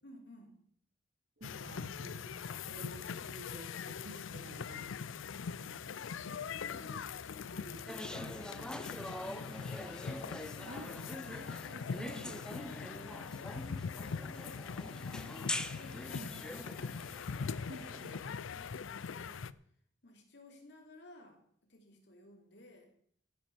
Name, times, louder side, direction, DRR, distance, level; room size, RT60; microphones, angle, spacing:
voice 1, 0.0-0.5 6.5-11.1 12.3-19.5 20.0-21.4 21.7-22.9, left 1 dB, 60° left, 2 dB, 3.2 m, -56 dB
sound 1, 1.4-19.5, left 6 dB, 85° left, 0.5 m, -42 dB
voice 2, 1.4-2.3 2.6-5.0 5.6-6.4 10.6-10.9 11.2-12.5 16.1-16.4 17.7-18.2, right 1 dB, 55° right, 4 dB, 2.7 m, -51 dB
sound 2, 7.9-18.2, left 1 dB, 5° left, 0.6 m, -44 dB
15.5 x 7.3 x 7.0 m, 0.65 s
head